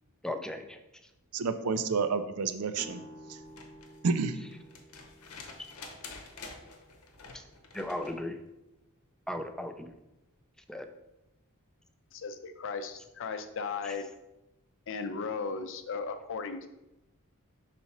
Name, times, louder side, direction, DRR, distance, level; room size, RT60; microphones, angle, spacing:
voice 1, 0.2-0.8 7.3-7.4 7.7-8.4 9.3-9.9 10.7-10.9 13.8-13.9, left 1 dB, 5° left, 7 dB, 0.4 m, -36 dB
voice 2, 1.3-3.0 3.3-3.4 4.0-4.4, right 4 dB, 85° right, 10 dB, 0.5 m, -29 dB
sound 1, 2.8-8.5, equal, 25° left, 0.8 m, -54 dB
sound 2, 3.4-8.2 9.9-10.0, left 4 dB, 90° left, 0.9 m, -48 dB
voice 3, 12.1-14.1 14.9-16.7, left 5 dB, 60° left, 8 dB, 0.6 m, -36 dB
5.8 x 4.2 x 4.2 m, 0.93 s
head